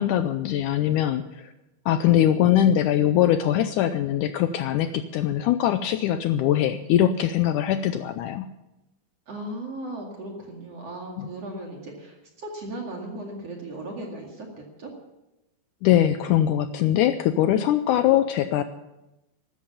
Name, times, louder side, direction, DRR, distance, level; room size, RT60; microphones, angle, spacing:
voice 1, 0.0-1.5 1.9-8.5 11.2-11.3 15.8-18.6, left 11 dB, 80° left, 10 dB, 1.8 m, -22 dB
voice 2, 9.3-14.5 14.8-14.9, right 1 dB, 45° right, 0 dB, 3.0 m, -36 dB
14.5 x 13.0 x 7.1 m, 0.96 s
omnidirectional pair, 4.2 m